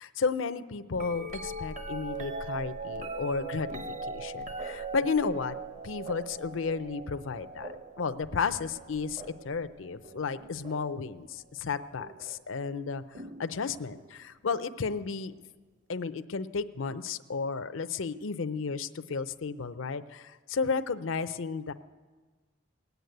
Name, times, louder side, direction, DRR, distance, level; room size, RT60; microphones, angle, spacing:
voice 1, 0.0-3.7 4.1-5.5 5.8-15.3 15.9-21.7, left 5 dB, 80° left, 11 dB, 0.6 m, -33 dB
sound 1, 0.9-11.1 12.0-12.4 13.1-14.1 15.9-16.0, right 2 dB, 40° right, 0.8 m, -41 dB
19.0 x 8.1 x 9.2 m, 1.4 s
head